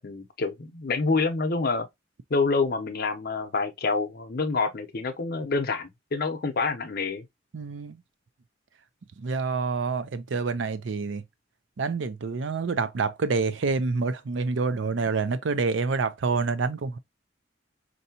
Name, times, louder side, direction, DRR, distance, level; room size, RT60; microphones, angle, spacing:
voice 1, 0.0-1.9 2.3-7.3, left 4 dB, 55° left, 0.7 m, -27 dB
voice 2, 7.5-8.0 9.2-11.2 11.8-17.0, right 4 dB, 80° right, 0.5 m, -27 dB
4.5 x 2.7 x 2.7 m
head